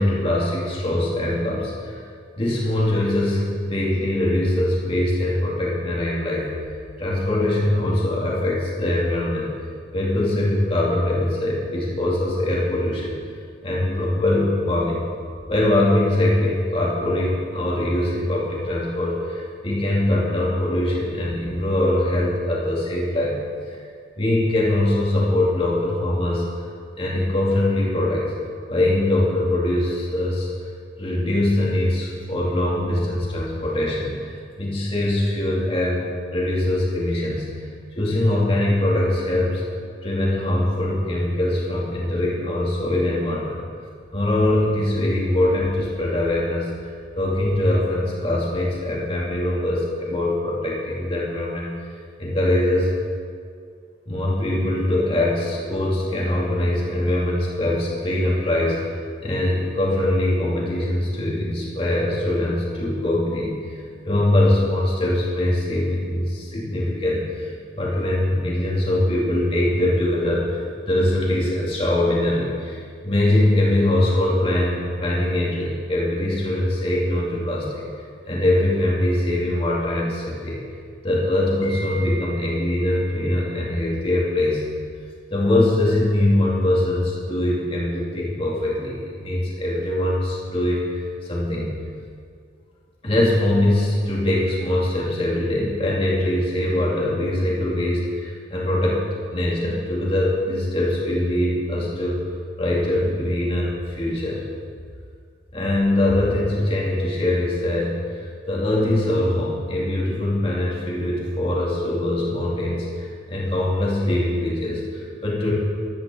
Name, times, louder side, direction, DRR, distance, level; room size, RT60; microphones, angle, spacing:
voice 1, 0.0-2.0 2.4-6.5 7.0-9.5 9.9-13.2 13.6-15.0 15.5-23.8 24.2-26.4 27.0-28.3 28.7-30.5 31.0-37.7 38.0-39.6 40.0-43.6 44.1-46.7 47.2-51.7 52.2-52.9 54.1-58.9 59.2-77.9 78.2-80.6 81.0-84.6 85.3-91.7 93.0-102.2 102.6-104.5 105.5-115.5, left 1 dB, 30° left, -4 dB, 2.5 m, -22 dB
14.0 x 12.0 x 3.8 m, 2.2 s
head